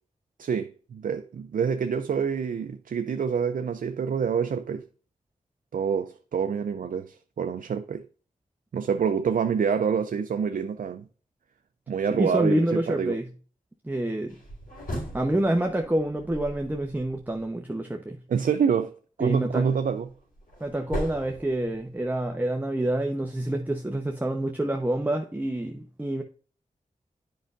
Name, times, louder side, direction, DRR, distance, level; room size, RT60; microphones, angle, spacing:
voice 1, 0.4-4.9 5.7-8.1 8.7-11.1 11.9-13.2 18.3-20.1, right 6 dB, 75° right, 0.5 m, -27 dB
voice 2, 12.1-13.3 13.8-14.4 15.1-18.2 19.2-19.7 20.6-26.2, right 1 dB, 10° right, 0.9 m, -27 dB
sound 1, 14.3-17.4 19.6-22.2, equal, 80° left, 3.9 m, -38 dB
8.8 x 5.4 x 2.5 m
cardioid pair, 45°, 14 cm